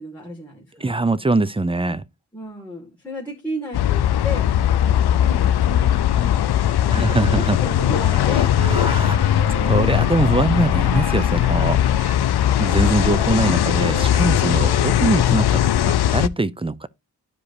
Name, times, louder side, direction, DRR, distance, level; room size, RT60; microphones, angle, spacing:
voice 1, 0.0-0.9 2.3-4.5 5.2-8.6 9.4-9.9, equal, 5° left, 2.1 m, -33 dB
voice 2, 0.8-2.0 6.9-7.6 8.6-9.4 9.7-11.8 12.6-16.9, right 2 dB, 15° right, 0.3 m, -22 dB
sound 1, 3.7-16.3, left 11 dB, 65° left, 0.5 m, -19 dB
Wind instrument woodwind instrument, 8.5-11.5 11.8-15.0, right 4 dB, 75° right, 3.2 m, -37 dB
12.0 x 4.9 x 2.7 m
wide cardioid pair, 80°, 44 cm